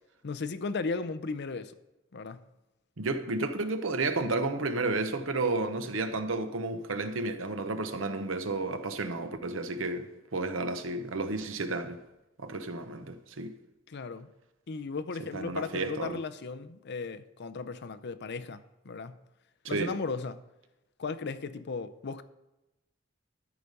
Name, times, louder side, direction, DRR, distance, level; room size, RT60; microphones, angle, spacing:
voice 1, 0.2-1.7 2.1-2.4 13.9-14.3 14.7-19.2 19.7-20.4 21.0-22.2, left 4 dB, 55° left, 0.6 m, -36 dB
voice 2, 3.0-12.0 12.4-13.5 15.3-16.2 19.6-20.0, right 3 dB, 70° right, 0.9 m, -32 dB
13.0 x 5.0 x 5.4 m
head